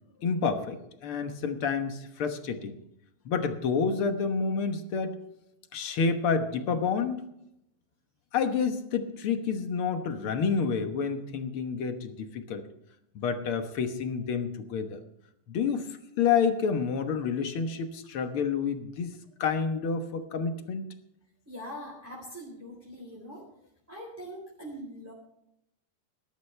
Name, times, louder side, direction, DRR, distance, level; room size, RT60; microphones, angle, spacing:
voice 1, 0.2-0.8 1.0-2.8 3.2-5.2 5.7-7.2 8.3-12.6 13.1-15.0 15.5-15.8 16.2-19.1 19.4-20.9, left 5 dB, 55° left, 7 dB, 1.7 m, -29 dB
voice 2, 21.5-23.4 23.9-25.1, equal, 5° right, -4 dB, 3.5 m, -42 dB
18.5 x 12.5 x 3.3 m, 0.78 s
omnidirectional pair, 3.5 m